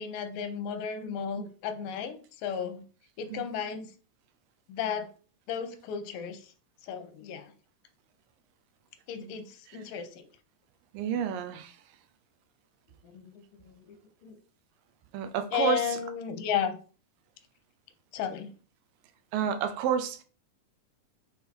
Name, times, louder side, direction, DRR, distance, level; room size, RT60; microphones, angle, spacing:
voice 1, 0.0-2.8 3.2-3.9 4.7-5.1 5.5-6.5 6.8-7.5 9.1-10.3 13.0-14.4 15.5-16.8 18.1-18.5, left 7 dB, 90° left, 2.5 m, -34 dB
voice 2, 10.9-11.8 15.1-16.0 19.3-20.2, right 8 dB, 90° right, 2.5 m, -30 dB
7.2 x 3.7 x 4.4 m
omnidirectional pair, 3.9 m